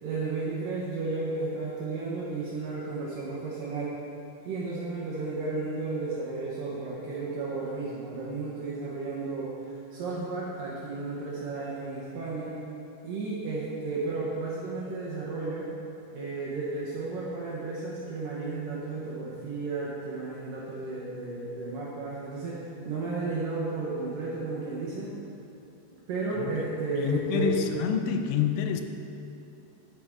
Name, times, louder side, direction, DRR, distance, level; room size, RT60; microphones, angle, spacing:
voice 1, 0.0-4.0 4.4-9.5 9.9-12.6 13.0-15.7 16.1-25.1 26.1-27.7, right 3 dB, 70° right, -6 dB, 2.2 m, -33 dB
voice 2, 27.0-28.8, left 8 dB, 85° left, 6 dB, 2.8 m, -27 dB
13.0 x 5.7 x 3.6 m, 2.7 s
omnidirectional pair, 5.0 m